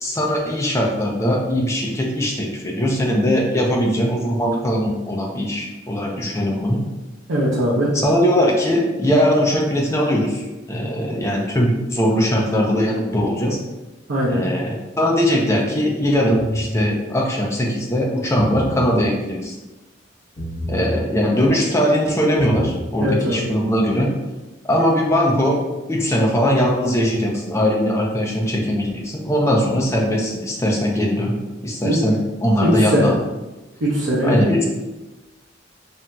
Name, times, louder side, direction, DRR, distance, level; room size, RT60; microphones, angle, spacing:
voice 1, 0.0-6.8 7.9-13.6 14.3-19.5 20.7-24.1 24.6-25.6 25.9-31.4 31.6-33.2 34.2-34.7, equal, 15° left, -1 dB, 0.4 m, -20 dB
voice 2, 7.3-7.9 14.1-14.4 23.0-23.5 31.8-32.0 32.6-33.1 33.8-34.5, equal, 80° right, -7 dB, 0.6 m, -20 dB
sound 1, 16.4-16.9 18.2-18.9 20.4-20.9 22.2-22.9, equal, 35° left, 1.2 m, -29 dB
2.8 x 2.6 x 2.2 m, 1.1 s
head